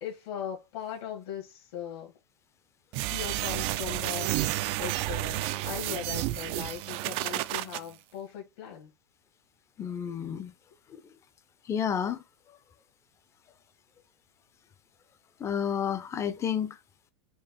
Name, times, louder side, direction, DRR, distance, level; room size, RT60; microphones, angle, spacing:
voice 1, 0.0-2.1 3.1-8.9, left 9 dB, 65° left, 1.7 m, -39 dB
sound 1, 2.9-7.8, right 16 dB, 45° right, 0.4 m, -31 dB
voice 2, 9.8-10.5 10.9-11.0 11.7-12.2 15.4-16.8, left 8 dB, 20° left, 0.6 m, -30 dB
4.5 x 2.4 x 4.1 m
hypercardioid pair, 120°, 14 cm